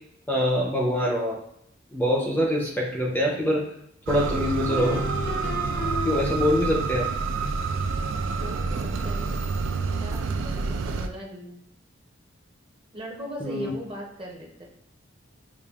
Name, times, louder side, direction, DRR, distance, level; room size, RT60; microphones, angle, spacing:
voice 1, 0.3-1.4 1.9-3.6 4.1-5.0 6.0-7.1 13.4-13.7, equal, 10° left, -3 dB, 0.5 m, -24 dB
sound 1, 4.1-11.1, right 4 dB, 75° right, 0.3 m, -28 dB
sound 2, 4.7-6.7, left 3 dB, 65° left, 0.6 m, -34 dB
voice 2, 8.3-9.6 10.0-11.6 12.9-14.6, equal, 25° right, -1 dB, 0.7 m, -39 dB
5.1 x 2.3 x 2.3 m, 0.73 s
head